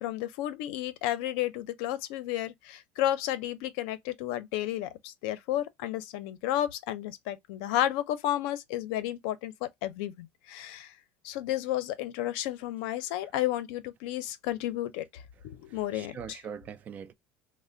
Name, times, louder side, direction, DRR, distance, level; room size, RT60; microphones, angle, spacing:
voice 1, 0.0-10.9 11.2-16.2, left 13 dB, 80° left, 0.5 m, -32 dB
voice 2, 15.7-17.1, right 7 dB, 30° right, 0.4 m, -42 dB
3.2 x 2.0 x 3.7 m
cardioid pair, 165°, 6 cm